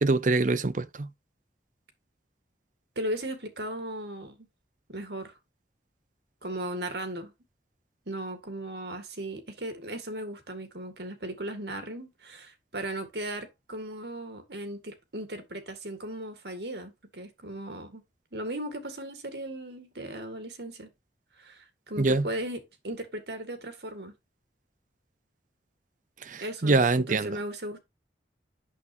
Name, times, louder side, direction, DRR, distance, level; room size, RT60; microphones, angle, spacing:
voice 1, 0.0-1.1 22.0-22.3 26.2-27.4, right 3 dB, 45° right, 0.6 m, -24 dB
voice 2, 3.0-4.5 4.9-5.4 6.4-7.3 8.1-18.0 18.3-20.9 21.4-24.2 26.4-27.8, right 1 dB, 70° right, 1.9 m, -37 dB
8.4 x 7.0 x 2.7 m
head